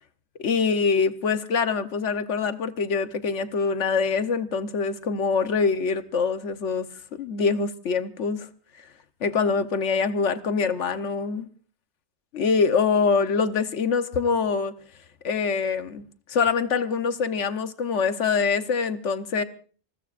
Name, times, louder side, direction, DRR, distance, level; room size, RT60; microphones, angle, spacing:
voice 1, 0.4-6.9 7.1-8.5 9.2-11.5 12.3-14.7 15.2-16.0 16.3-19.4, left 5 dB, 90° left, 1.3 m, -24 dB
27.0 x 20.5 x 2.5 m
omnidirectional pair, 1.2 m